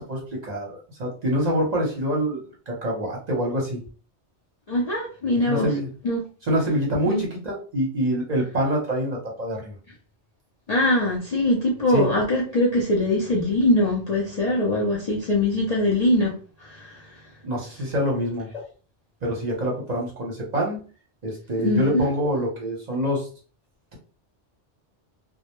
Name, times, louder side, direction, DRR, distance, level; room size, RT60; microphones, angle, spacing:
voice 1, 0.0-3.8 5.5-5.9 6.5-9.7 11.9-12.1 17.4-18.5 19.2-20.8 21.2-23.3, equal, 45° right, 0.7 m, -26 dB
voice 2, 4.7-5.7 6.0-6.2 7.1-7.2 10.7-16.3 16.6-17.0 21.6-22.1, left 1 dB, 50° left, 0.5 m, -22 dB
2.1 x 2.0 x 2.9 m
omnidirectional pair, 1.2 m